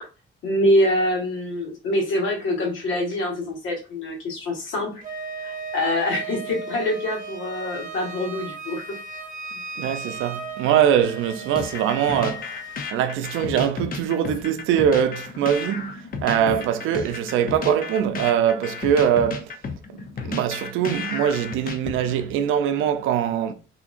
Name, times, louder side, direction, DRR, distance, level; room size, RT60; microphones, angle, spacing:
voice 1, 0.4-5.0 5.4-8.9 16.4-16.7, left 1 dB, 80° left, 1.4 m, -25 dB
Wind instrument woodwind instrument, 5.0-12.9, right 3 dB, 45° right, 0.8 m, -36 dB
voice 2, 9.8-12.5 12.9-19.5 20.2-23.5, right 9 dB, 90° right, 0.5 m, -22 dB
sound 1, 11.6-22.3, left 5 dB, 45° left, 0.6 m, -33 dB
3.7 x 2.8 x 2.4 m
cardioid pair, 90°, 20 cm